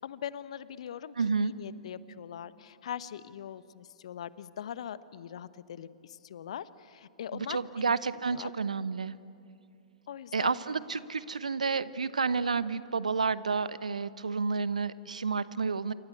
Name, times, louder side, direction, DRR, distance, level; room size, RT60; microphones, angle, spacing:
voice 1, 0.0-1.1 1.4-7.9 8.3-8.5 10.1-10.5, left 9 dB, 60° left, 16 dB, 1.0 m, -41 dB
voice 2, 1.2-1.5 7.3-9.2 10.3-15.9, right 4 dB, 75° right, 16 dB, 0.9 m, -30 dB
27.5 x 24.5 x 8.5 m, 2.5 s
figure-of-eight pair, 110°, 4 cm